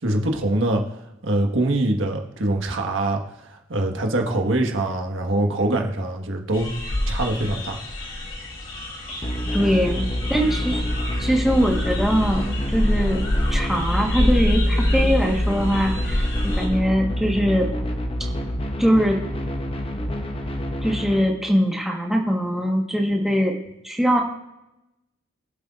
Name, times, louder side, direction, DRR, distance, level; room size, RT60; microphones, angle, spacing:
voice 1, 0.0-0.8 1.2-3.2 3.5-6.7 7.1-7.8, right 1 dB, 85° right, 3 dB, 1.5 m, -23 dB
sound 1, 6.5-16.7, left 1 dB, 85° left, 3.0 m, -28 dB
sound 2, 9.2-21.2, equal, 30° left, 0.8 m, -26 dB
voice 2, 9.5-10.8 11.2-13.2 13.5-17.7 18.8-19.2 20.8-23.6 23.8-24.2, equal, ahead, 0 dB, 1.3 m, -22 dB
23.5 x 7.9 x 2.5 m, 0.93 s
head